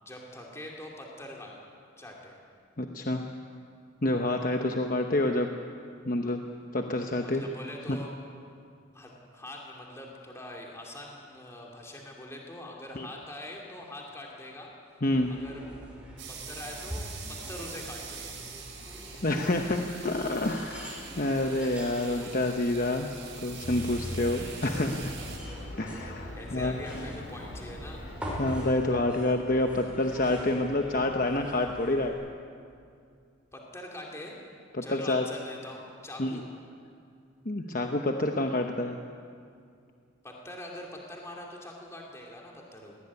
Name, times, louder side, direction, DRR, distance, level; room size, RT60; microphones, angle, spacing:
voice 1, 0.0-1.6 2.0-2.4 7.2-8.1 8.9-14.7 15.3-15.6 16.3-18.4 26.4-28.0 33.5-34.5 34.8-36.5 40.2-43.0, left 1 dB, 15° left, -1 dB, 2.7 m, -43 dB
voice 2, 2.8-3.2 4.0-5.5 6.0-6.4 6.7-7.4 7.9-8.0 13.0-13.1 15.0-15.3 19.2-23.1 23.4-25.1 25.8-26.8 28.4-32.2 34.7-35.2 36.2-36.3 37.4-39.0, left 2 dB, 45° left, 3 dB, 1.0 m, -28 dB
sound 1, 15.1-32.1, equal, 5° right, 5.1 m, -44 dB
sound 2, 16.2-25.4, right 6 dB, 65° right, 4.8 m, -44 dB
sound 3, 23.6-28.7, left 1 dB, 85° left, 3.9 m, -41 dB
20.0 x 18.0 x 9.7 m, 2.3 s
head